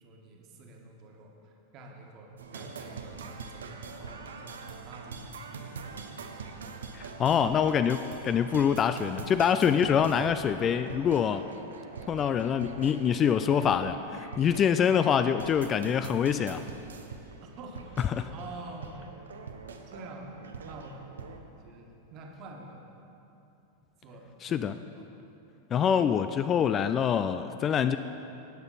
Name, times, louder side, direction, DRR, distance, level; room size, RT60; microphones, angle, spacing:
voice 1, 0.0-6.1 17.4-18.0 18.3-19.3 19.9-22.9 24.0-24.6 24.9-25.1, right 2 dB, 40° right, 1 dB, 1.6 m, -47 dB
sound 1, 2.4-21.4, right 5 dB, 65° right, 0.7 m, -44 dB
voice 2, 6.9-11.5 12.1-16.6 18.2-18.3 24.4-24.7 25.7-28.0, left 8 dB, 25° left, 11 dB, 0.3 m, -25 dB
18.0 x 6.8 x 4.1 m, 2.8 s
figure-of-eight pair, 90°, 0 cm